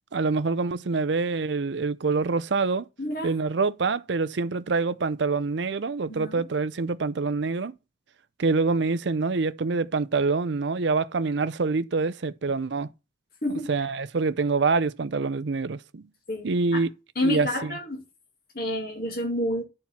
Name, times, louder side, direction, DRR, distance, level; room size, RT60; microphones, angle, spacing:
voice 1, 0.1-2.8 3.2-7.7 8.4-12.9 13.7-16.0 16.4-16.9 17.2-17.5, right 4 dB, 70° right, 0.6 m, -25 dB
voice 2, 3.0-3.3 6.1-6.4 13.4-13.9 16.3-16.5 16.7-16.8 17.2-18.0 18.5-19.6, left 1 dB, 50° left, 2.2 m, -29 dB
10.5 x 4.4 x 5.7 m
head